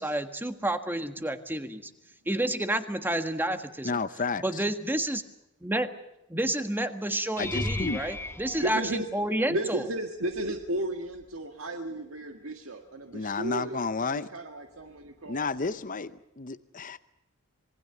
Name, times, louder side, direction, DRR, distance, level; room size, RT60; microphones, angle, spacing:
voice 1, 0.0-1.9 2.2-4.0 4.4-5.2 5.6-5.9 6.3-9.8, right 1 dB, 10° right, 8 dB, 1.5 m, -30 dB
voice 2, 3.8-4.6 7.4-8.0 13.1-14.3 15.3-17.0, left 4 dB, 40° left, 12 dB, 0.7 m, -31 dB
sound 1, 7.4-9.6 10.3-10.8 11.1-11.3 15.6-15.7, left 1 dB, 10° left, 1.2 m, -36 dB
voice 3, 8.6-9.1 9.5-13.8 14.1-15.8, right 1 dB, 70° right, 4 dB, 1.9 m, -34 dB
26.5 x 20.0 x 6.9 m, 0.87 s
head